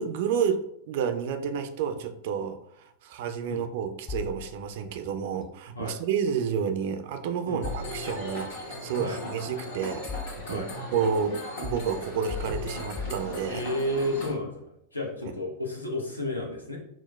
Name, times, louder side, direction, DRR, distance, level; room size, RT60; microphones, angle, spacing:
voice 1, 0.0-10.0 10.5-10.7 10.9-13.6 15.2-15.3, right 7 dB, 50° right, 7 dB, 0.4 m, -30 dB
sound 1, 4.1-5.0 7.6-8.5 9.4-10.7 11.6-13.9, left 5 dB, 25° left, 0.3 m, -38 dB
sound 2, 7.6-14.3, left 1 dB, 55° left, 1.3 m, -38 dB
voice 2, 13.5-14.6 14.9-16.8, left 1 dB, 80° left, -1 dB, 0.7 m, -31 dB
6.0 x 2.0 x 2.2 m, 0.73 s
figure-of-eight pair, 90°, 0 cm